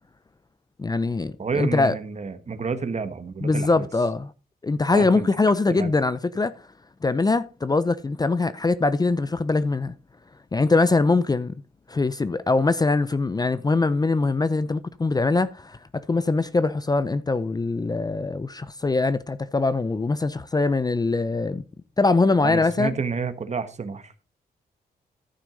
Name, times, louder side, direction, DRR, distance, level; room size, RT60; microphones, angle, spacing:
voice 1, 0.8-1.9 3.4-4.3 4.6-6.5 7.0-9.9 10.5-11.5 11.9-21.6 22.0-23.0, left 3 dB, 25° left, 0.5 m, -22 dB
voice 2, 1.4-3.9 4.9-5.3 5.7-5.9 22.4-24.1, right 5 dB, 40° right, 1.3 m, -29 dB
14.0 x 6.1 x 3.9 m
cardioid pair, 95°, 17 cm